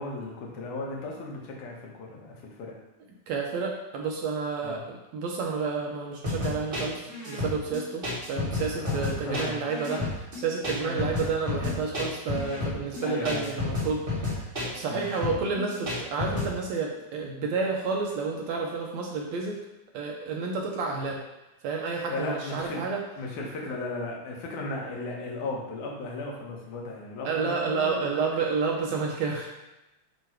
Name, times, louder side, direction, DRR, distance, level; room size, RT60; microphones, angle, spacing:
voice 1, 0.0-2.7 4.6-4.8 8.8-9.6 10.8-11.1 13.0-13.5 14.8-15.1 22.1-22.9 23.2-28.3, left 2 dB, 80° left, -2 dB, 2.6 m, -36 dB
voice 2, 3.3-19.6 19.9-21.2 21.6-23.0 27.3-29.5, right 4 dB, 75° right, 0 dB, 1.8 m, -30 dB
sound 1, 6.2-16.5, left 2 dB, 30° right, 1.1 m, -31 dB
8.8 x 3.1 x 4.5 m, 0.97 s
omnidirectional pair, 3.5 m